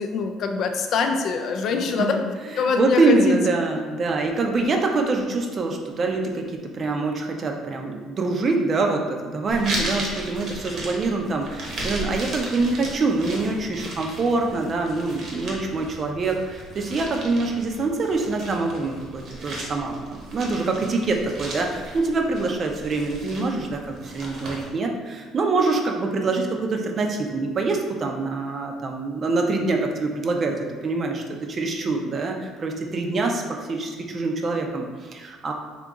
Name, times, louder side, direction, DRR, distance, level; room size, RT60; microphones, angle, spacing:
voice 1, 0.0-2.2 2.6-3.4, left 5 dB, 55° left, 5 dB, 0.4 m, -24 dB
voice 2, 1.7-31.2 31.5-35.5, right 3 dB, 35° right, 3 dB, 0.5 m, -25 dB
sound 1, 9.5-24.7, right 1 dB, 50° right, 1.0 m, -36 dB
3.7 x 2.8 x 3.6 m, 1.4 s
cardioid pair, 125°, 0 cm